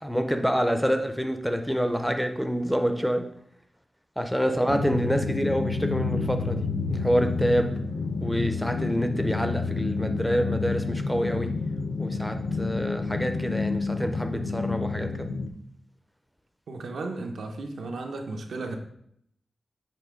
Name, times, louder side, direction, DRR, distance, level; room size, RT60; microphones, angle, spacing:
voice 1, 0.0-3.3 4.2-7.8 8.2-11.6 12.0-15.3, equal, ahead, 7 dB, 0.4 m, -27 dB
voice 2, 4.4-5.1 16.7-18.8, right 3 dB, 85° right, 3 dB, 0.8 m, -35 dB
sound 1, 4.7-15.5, left 4 dB, 60° left, 0.5 m, -29 dB
7.0 x 3.3 x 4.9 m, 0.72 s
wide cardioid pair, 175°, 0 cm